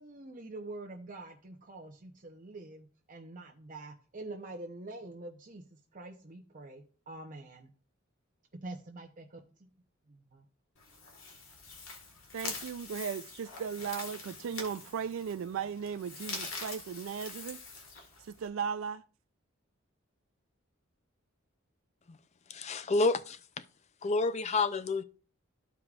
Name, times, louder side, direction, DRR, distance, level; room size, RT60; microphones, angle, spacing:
voice 1, 0.0-7.7 8.6-9.7 10.1-10.4, right 2 dB, 40° right, 0.8 m, -46 dB
sound 1, 10.8-18.5, left 3 dB, 85° left, 1.7 m, -44 dB
voice 2, 12.3-17.6 18.2-19.0, right 7 dB, 70° right, 0.3 m, -37 dB
voice 3, 22.5-23.4 24.0-25.0, left 3 dB, 35° left, 0.4 m, -28 dB
14.0 x 4.7 x 2.4 m
head